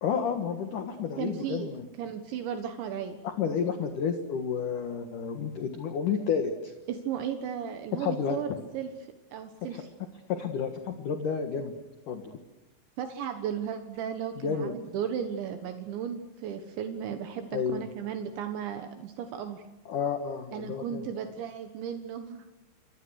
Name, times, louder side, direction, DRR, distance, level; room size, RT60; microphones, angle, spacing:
voice 1, 0.0-1.9 3.2-6.7 7.9-8.6 9.7-9.8 10.3-11.7 12.1-12.3 14.4-14.7 17.5-17.8 19.9-21.0, left 6 dB, 55° left, 7 dB, 2.5 m, -31 dB
voice 2, 1.2-1.7 2.0-3.2 6.9-8.9 9.3-9.9 13.0-19.6 20.5-22.5, right 8 dB, 75° right, 7 dB, 3.7 m, -35 dB
29.0 x 24.5 x 6.5 m, 1.0 s
omnidirectional pair, 5.4 m